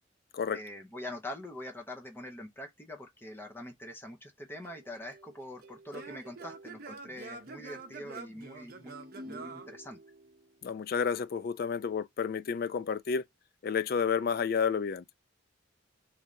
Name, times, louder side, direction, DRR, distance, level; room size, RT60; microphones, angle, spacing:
voice 1, 0.5-8.9 9.2-10.0, left 1 dB, 10° left, 0.7 m, -44 dB
Singing / Plucked string instrument, 4.6-10.5, right 3 dB, 50° right, 0.7 m, -46 dB
voice 2, 10.6-13.2 13.6-15.0, left 6 dB, 50° left, 0.3 m, -30 dB
3.2 x 2.7 x 3.5 m
head